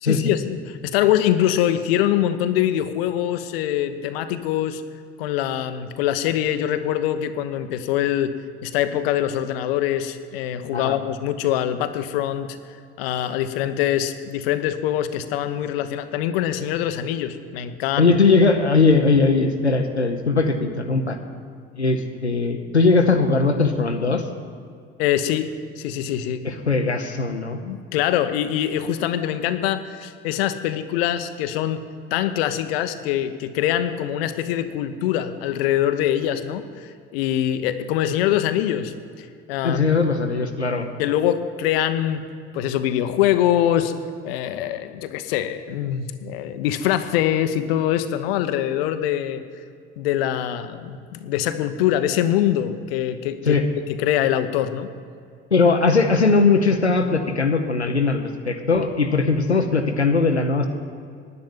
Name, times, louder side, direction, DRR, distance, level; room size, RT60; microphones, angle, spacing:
voice 1, 0.0-4.8 5.2-8.3 8.6-12.6 13.0-18.1 25.0-25.5 25.8-26.4 27.7-31.8 32.1-40.0 41.0-42.2 42.5-43.9 44.2-49.4 50.0-53.6 54.0-54.9, left 11 dB, 65° left, 10 dB, 0.9 m, -23 dB
voice 2, 18.0-21.2 21.8-24.2 26.4-27.6 39.6-40.9 53.5-53.6 55.5-60.7, left 4 dB, 90° left, 4 dB, 0.8 m, -19 dB
10.5 x 9.8 x 8.8 m, 2.3 s
figure-of-eight pair, 55°, 32 cm